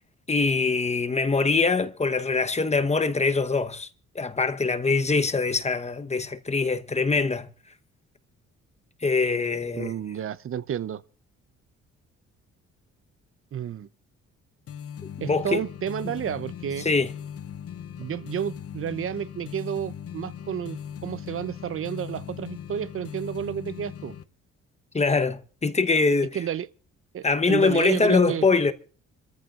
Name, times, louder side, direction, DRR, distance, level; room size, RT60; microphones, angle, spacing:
voice 1, 0.3-3.9 4.1-7.5 9.0-9.9 15.2-15.6 16.8-17.1 24.9-26.4 27.2-28.7, left 4 dB, 20° left, 1.0 m, -23 dB
voice 2, 9.8-11.0 13.5-13.9 15.2-16.9 18.0-24.1 26.3-26.7 27.1-28.4, right 9 dB, 45° right, 0.7 m, -31 dB
sound 1, 14.7-24.2, left 8 dB, 50° left, 0.8 m, -39 dB
26.0 x 14.0 x 2.4 m
cardioid pair, 90°, 30 cm